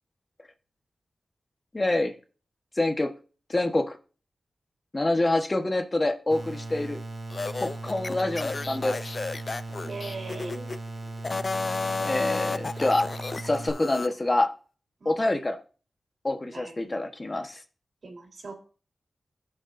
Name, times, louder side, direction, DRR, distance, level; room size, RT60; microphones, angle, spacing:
voice 1, 1.7-2.1 2.7-3.1 3.5-4.0 4.9-7.0 7.6-9.1 12.0-13.1 13.4-14.5 15.0-15.6 16.2-17.6, left 2 dB, 30° left, 6 dB, 1.2 m, -26 dB
sound 1, 6.3-13.7, right 2 dB, 55° right, 2.9 m, -38 dB
sound 2, 7.3-10.8 11.2-14.1, left 3 dB, 45° left, 0.5 m, -32 dB
voice 2, 9.8-10.7 15.0-15.2 16.5-16.9 18.0-18.5, right 3 dB, 70° right, 2 dB, 3.6 m, -40 dB
16.0 x 6.8 x 2.6 m, 0.37 s
wide cardioid pair, 75°, 0 cm